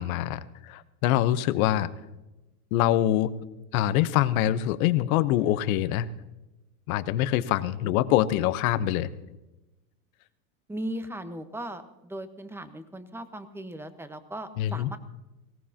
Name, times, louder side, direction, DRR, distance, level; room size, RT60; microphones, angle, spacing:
voice 1, 0.0-1.9 2.7-3.3 3.7-6.1 6.9-9.1 14.6-14.9, left 13 dB, 70° left, 14 dB, 1.0 m, -24 dB
voice 2, 7.8-8.4 10.7-15.0, right 1 dB, 5° right, 9 dB, 1.2 m, -38 dB
20.0 x 17.5 x 2.9 m, 1.0 s
hypercardioid pair, 105°, 44 cm